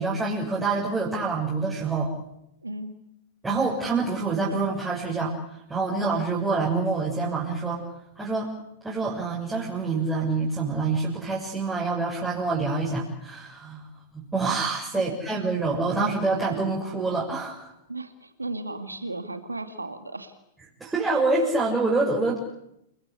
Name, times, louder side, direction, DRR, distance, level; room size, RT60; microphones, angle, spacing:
voice 1, 0.0-2.1 3.4-5.3 5.7-7.8 8.1-8.5 8.8-13.9 14.1-17.7 20.8-22.4, right 3 dB, 10° right, -5 dB, 6.7 m, -26 dB
voice 2, 2.6-2.9 14.9-15.1 17.9-20.3, right 2 dB, 85° right, 8 dB, 2.2 m, -35 dB
29.0 x 21.0 x 8.5 m, 0.81 s
figure-of-eight pair, 105°, 0 cm